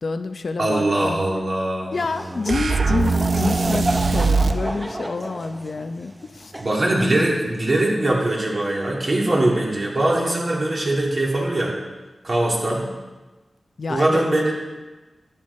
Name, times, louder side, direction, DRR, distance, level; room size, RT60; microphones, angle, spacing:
voice 1, 0.0-1.2 1.9-6.5 13.8-14.2, left 3 dB, 65° left, 8 dB, 0.6 m, -28 dB
voice 2, 0.6-2.4 6.6-11.8 12.2-12.9 13.9-14.5, right 1 dB, 50° right, -3 dB, 3.0 m, -22 dB
Laughter / Crowd, 1.9-7.7, right 1 dB, 20° right, 0.6 m, -31 dB
sound 1, 2.5-4.6, right 4 dB, 75° right, 0.6 m, -21 dB
12.0 x 9.2 x 4.3 m, 1.2 s
wide cardioid pair, 70°, 0 cm